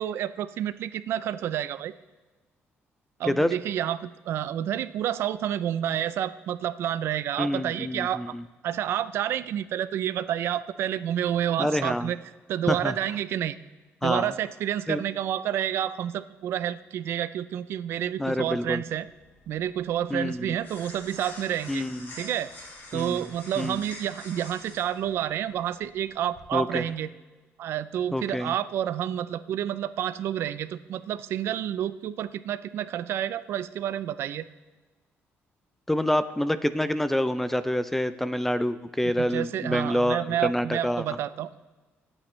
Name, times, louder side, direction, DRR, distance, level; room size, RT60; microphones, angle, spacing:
voice 1, 0.0-1.9 3.2-8.3 8.6-12.2 12.5-13.6 14.0-19.1 19.5-21.8 22.2-22.5 22.9-27.1 27.6-34.5 39.2-41.6, right 10 dB, 60° right, 15 dB, 0.5 m, -29 dB
voice 2, 7.4-8.4 11.6-12.1 12.7-12.9 14.0-14.3 14.9-15.0 18.2-18.8 20.1-20.5 21.7-22.1 22.9-23.2 23.6-23.8 26.5-26.8 28.1-28.6 35.9-41.0, left 1 dB, 5° left, 12 dB, 0.4 m, -27 dB
sound 1, 18.4-26.9, left 2 dB, 45° left, 4.3 m, -47 dB
26.5 x 8.8 x 3.2 m, 1.3 s
cardioid pair, 175°, 5 cm